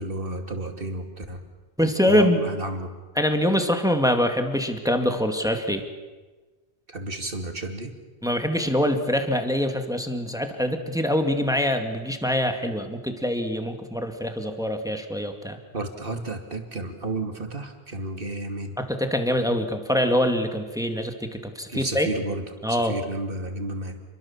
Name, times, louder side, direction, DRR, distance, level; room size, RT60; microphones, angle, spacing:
voice 1, 0.0-1.4 2.1-2.9 6.9-7.9 15.7-18.8 21.7-24.0, right 2 dB, 60° right, 5 dB, 2.9 m, -32 dB
voice 2, 1.8-2.4 3.2-5.8 8.2-15.6 18.8-22.1 22.6-22.9, equal, 5° right, 5 dB, 2.2 m, -24 dB
29.0 x 22.5 x 7.4 m, 1.3 s
omnidirectional pair, 1.1 m